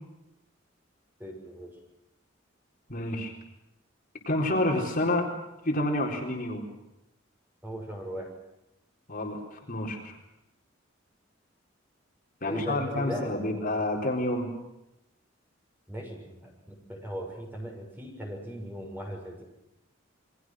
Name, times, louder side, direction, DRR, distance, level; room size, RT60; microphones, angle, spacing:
voice 1, 1.2-1.7 7.6-8.3 12.4-13.3 15.9-19.4, equal, 10° right, 1 dB, 6.8 m, -38 dB
voice 2, 2.9-3.3 4.3-5.3 5.6-6.7 9.1-10.1 12.4-14.5, left 1 dB, 45° left, 1 dB, 4.1 m, -29 dB
29.0 x 23.5 x 6.3 m, 0.90 s
head